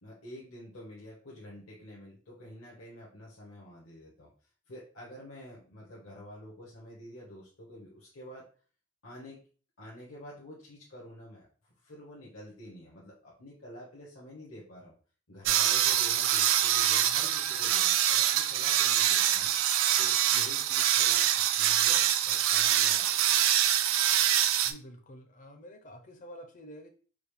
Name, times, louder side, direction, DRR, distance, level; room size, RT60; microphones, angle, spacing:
voice 1, 0.0-4.3 4.7-8.5 9.0-9.4 9.8-14.9 15.3-19.5 20.0-23.4, equal, 65° left, -4 dB, 1.0 m, -48 dB
sound 1, 15.5-24.7, right 11 dB, 65° right, 0.3 m, -25 dB
voice 2, 24.6-26.9, equal, 35° left, 5 dB, 0.6 m, -48 dB
4.9 x 2.0 x 3.2 m, 0.40 s
head